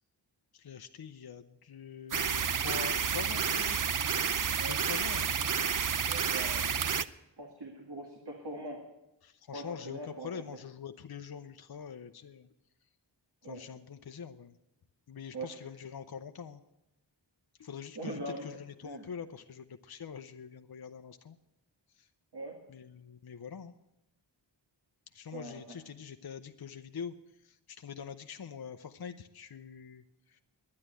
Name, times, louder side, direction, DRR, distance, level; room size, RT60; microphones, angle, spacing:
voice 1, 0.5-3.8 4.7-5.3 9.2-12.5 13.4-14.5 15.1-16.6 17.6-21.4 22.0-22.1 22.7-23.7 25.1-27.1 27.4-30.4, left 7 dB, 55° left, 8 dB, 0.7 m, -44 dB
sound 1, 2.1-7.0, right 7 dB, 45° right, 0.5 m, -30 dB
voice 2, 6.1-6.8 7.4-8.8 9.5-10.3 13.4-13.6 15.3-15.5 18.0-18.5 18.8-19.1 22.3-22.6 25.3-25.8, right 2 dB, 60° right, -1 dB, 2.0 m, -42 dB
11.0 x 9.7 x 9.0 m, 0.93 s
wide cardioid pair, 55°, 45 cm